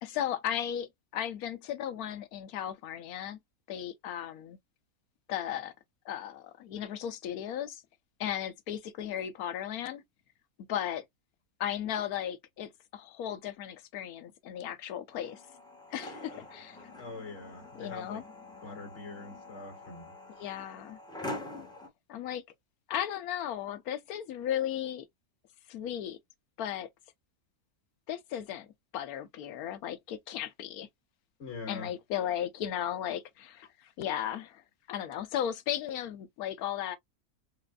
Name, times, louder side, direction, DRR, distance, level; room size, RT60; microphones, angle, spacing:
voice 1, 0.0-3.4 3.7-4.6 5.3-5.7 6.1-7.8 8.2-10.0 10.7-11.0 11.6-15.4 15.9-16.8 17.8-18.2 20.4-21.0 22.1-22.4 22.9-25.1 25.7-26.2 26.6-26.9 28.1-28.7 28.9-30.9 31.7-34.6 34.9-37.0, left 10 dB, 75° left, 1.1 m, -35 dB
sound 1, 15.1-21.9, left 2 dB, 5° left, 0.9 m, -45 dB
voice 2, 17.0-18.3 18.6-20.1 31.4-31.9, left 3 dB, 55° left, 2.2 m, -43 dB
4.9 x 2.4 x 2.2 m
omnidirectional pair, 1.6 m